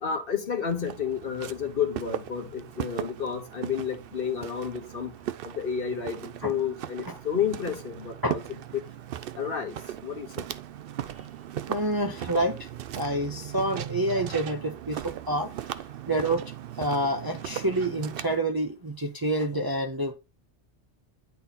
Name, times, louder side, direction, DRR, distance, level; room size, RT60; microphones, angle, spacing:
voice 1, 0.0-5.1 5.4-8.4 8.7-8.8 9.4-9.8 10.0-10.3, left 7 dB, 50° left, 1.3 m, -30 dB
Walk footsteps, 0.7-18.4, right 11 dB, 60° right, 0.7 m, -38 dB
voice 2, 11.7-12.7 12.9-15.8 16.1-16.4 16.8-20.1, right 1 dB, 25° right, 0.6 m, -28 dB
9.4 x 4.1 x 4.1 m
omnidirectional pair, 1.2 m